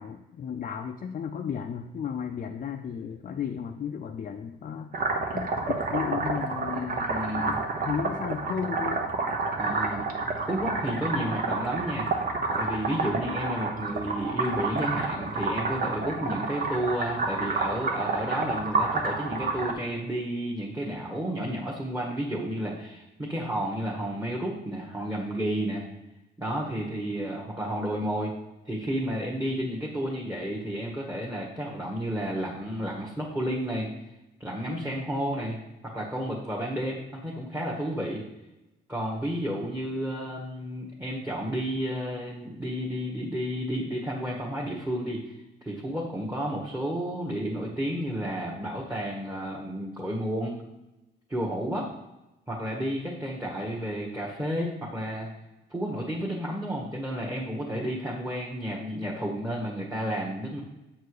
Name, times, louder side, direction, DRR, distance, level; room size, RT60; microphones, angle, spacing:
voice 1, 0.0-4.9 5.3-7.1 7.5-9.1 28.2-28.3, left 7 dB, 45° left, 4 dB, 0.5 m, -34 dB
sound 1, 4.9-19.7, right 3 dB, 50° right, 1.2 m, -29 dB
voice 2, 6.7-7.6 9.6-10.0 10.5-12.1 12.5-25.8 26.4-28.3 28.6-33.9 34.4-35.6 35.9-38.2 38.9-50.6 51.3-51.9 52.5-55.3 55.7-60.6, equal, 10° right, -3 dB, 1.6 m, -31 dB
7.9 x 4.6 x 4.8 m, 0.96 s
cardioid pair, 90°, 20 cm